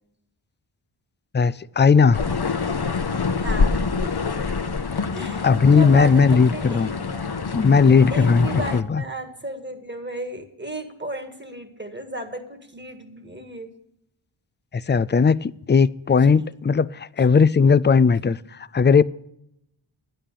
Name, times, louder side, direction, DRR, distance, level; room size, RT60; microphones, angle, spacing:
voice 1, 1.3-2.2 5.4-6.9 7.5-9.0 14.7-19.0, left 5 dB, 25° left, 0.3 m, -17 dB
sound 1, 2.1-8.8, left 4 dB, 50° left, 0.9 m, -26 dB
voice 2, 3.4-4.2 5.1-5.5 5.7-7.0 8.1-13.7, right 1 dB, 20° right, 1.9 m, -34 dB
11.0 x 9.0 x 6.8 m
wide cardioid pair, 50°, 50 cm